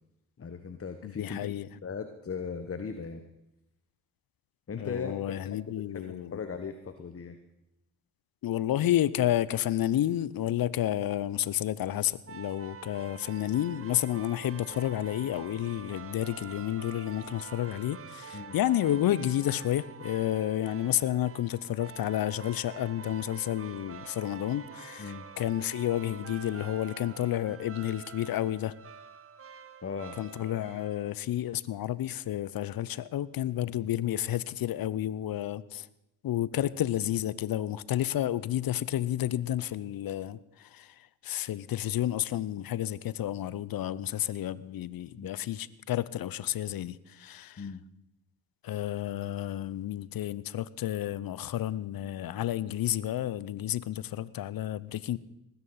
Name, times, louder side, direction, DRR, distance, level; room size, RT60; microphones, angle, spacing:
voice 1, 0.4-1.5 1.8-3.2 4.7-6.0 6.3-7.4 18.3-18.6 25.0-25.3 29.8-30.2 33.6-33.7 45.2-45.3 47.6-47.8, left 5 dB, 35° left, 8 dB, 1.2 m, -38 dB
voice 2, 1.0-1.7 4.7-6.4 8.4-28.7 30.2-35.9 36.2-47.6 48.6-55.2, left 12 dB, 60° left, 20 dB, 0.8 m, -31 dB
sound 1, 12.3-31.1, right 6 dB, 35° right, 1.0 m, -47 dB
19.0 x 9.8 x 5.7 m, 0.88 s
hypercardioid pair, 45°, 40 cm